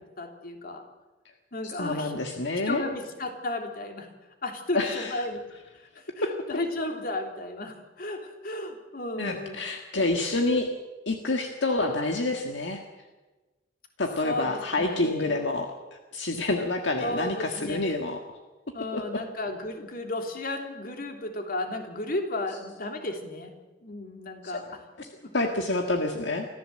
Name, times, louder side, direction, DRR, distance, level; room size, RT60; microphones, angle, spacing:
voice 1, 0.2-0.8 1.5-2.1 2.7-4.1 4.4-5.4 5.9-9.6 14.2-15.4 17.0-18.0 18.7-23.5 23.8-24.8 25.2-25.3, left 2 dB, 50° left, 4 dB, 3.1 m, -34 dB
voice 2, 1.6-2.8 4.7-5.2 6.2-6.3 9.2-10.7 11.0-12.8 14.0-18.4 18.9-19.2 25.0-25.1 25.3-26.5, left 2 dB, 70° left, 4 dB, 1.7 m, -28 dB
25.0 x 15.0 x 7.7 m, 1.2 s
head